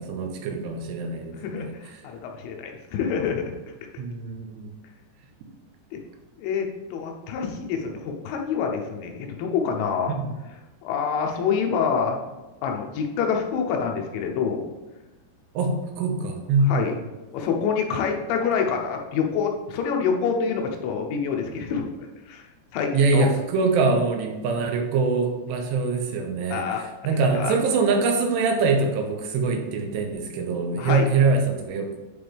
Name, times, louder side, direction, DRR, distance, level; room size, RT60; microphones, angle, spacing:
voice 1, 0.0-1.7 4.0-4.7 10.1-10.3 15.5-16.8 22.9-26.7 27.0-31.9, right 4 dB, 80° right, 3 dB, 2.8 m, -24 dB
voice 2, 1.3-3.6 5.9-6.0 6.4-10.2 10.8-12.2 12.6-14.7 16.7-16.9 17.3-21.9 22.3-22.5 22.7-23.3 26.5-26.8 27.1-27.6 30.8-31.1, left 6 dB, 85° left, 2 dB, 3.2 m, -26 dB
8.7 x 3.8 x 3.4 m, 1.1 s
omnidirectional pair, 5.1 m